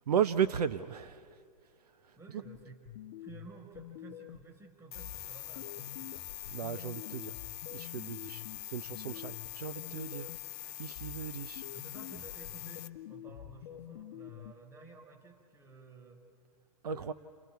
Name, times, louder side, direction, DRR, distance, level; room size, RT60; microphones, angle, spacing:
voice 1, 0.1-1.3 6.5-7.3 7.7-10.3 10.6-11.6 16.8-17.1, right 8 dB, 80° right, 14 dB, 0.7 m, -35 dB
voice 2, 2.2-2.9 3.2-6.3 9.1-9.3 11.7-16.2 17.0-17.1, right 3 dB, 15° right, 3 dB, 4.4 m, -53 dB
sound 1, 2.4-4.6 4.9-10.6 10.9-14.5, left 12 dB, 55° left, 0.8 m, -48 dB
sound 2, 4.9-12.9, left 14 dB, 40° left, 1.1 m, -44 dB
30.0 x 28.5 x 4.6 m, 2.2 s
hypercardioid pair, 125°, 20 cm